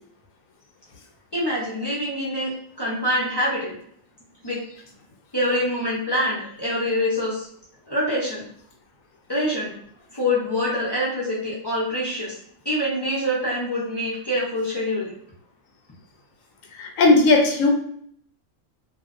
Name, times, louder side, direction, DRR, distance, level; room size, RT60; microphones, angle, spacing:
voice 1, 1.3-3.8 4.4-4.6 5.3-7.5 7.9-8.4 9.3-9.7 10.1-12.4 12.6-15.1, left 1 dB, 40° left, -7 dB, 0.3 m, -25 dB
voice 2, 16.8-17.7, left 3 dB, 90° left, 2 dB, 1.0 m, -17 dB
2.5 x 2.1 x 2.4 m, 0.62 s
omnidirectional pair, 1.4 m